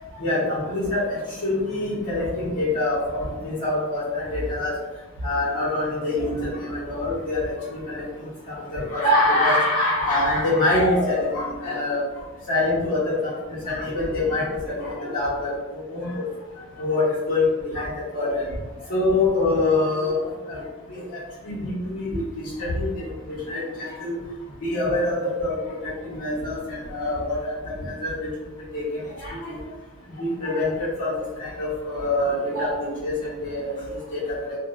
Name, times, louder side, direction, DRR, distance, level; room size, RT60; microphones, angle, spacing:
voice 1, 0.2-4.7 5.2-12.0 12.5-16.2 16.8-18.4 18.9-20.6 20.9-23.1 23.5-24.1 24.6-28.3 28.7-28.8 29.2-29.5 30.2-31.1 31.4-34.6, left 2 dB, 80° left, -14 dB, 1.0 m, -25 dB
2.5 x 2.1 x 2.5 m, 1.2 s
head